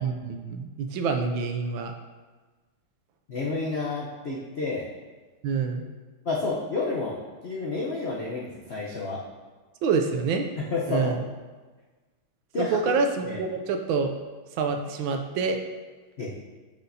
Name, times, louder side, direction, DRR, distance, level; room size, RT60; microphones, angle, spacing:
voice 1, 0.0-1.9 5.4-5.8 9.8-10.5 10.9-11.2 12.6-14.1 14.6-15.6, right 5 dB, 75° right, 5 dB, 1.3 m, -27 dB
voice 2, 3.3-4.9 6.2-9.2 10.7-11.1 12.5-12.8 13.2-13.4 16.2-16.3, left 3 dB, 65° left, -4 dB, 0.6 m, -30 dB
8.8 x 6.2 x 2.7 m, 1.3 s
omnidirectional pair, 2.4 m